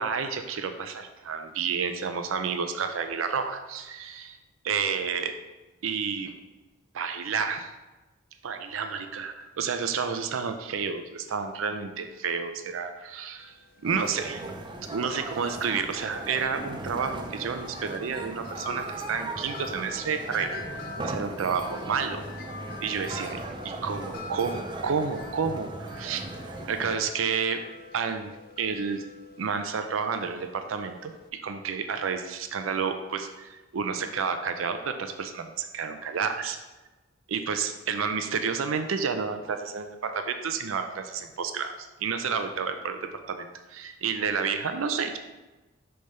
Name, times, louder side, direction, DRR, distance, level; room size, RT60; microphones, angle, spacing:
voice 1, 0.0-4.3 4.7-5.4 5.8-6.3 6.9-7.7 8.4-13.5 13.8-14.4 14.8-20.6 21.0-22.2 22.8-23.4 23.8-26.2 26.7-27.6 27.9-29.0 29.4-36.6 37.3-45.2, right 6 dB, 90° right, 7 dB, 0.5 m, -30 dB
Wind chime, 13.4-31.3, left 2 dB, 45° left, 0.4 m, -45 dB
sound 1, 13.8-27.0, right 2 dB, 25° right, 0.4 m, -38 dB
6.5 x 3.4 x 5.4 m, 1.1 s
head